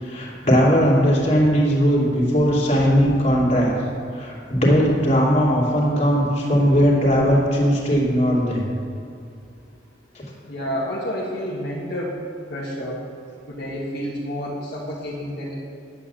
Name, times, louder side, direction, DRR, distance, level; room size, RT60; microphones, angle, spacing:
voice 1, 0.0-3.7 4.1-8.7 10.1-10.2, equal, 35° left, -4 dB, 3.0 m, -18 dB
voice 2, 10.5-12.2 12.5-13.1 13.5-15.5, equal, 60° left, -6 dB, 1.9 m, -29 dB
11.0 x 8.9 x 7.0 m, 2.4 s
head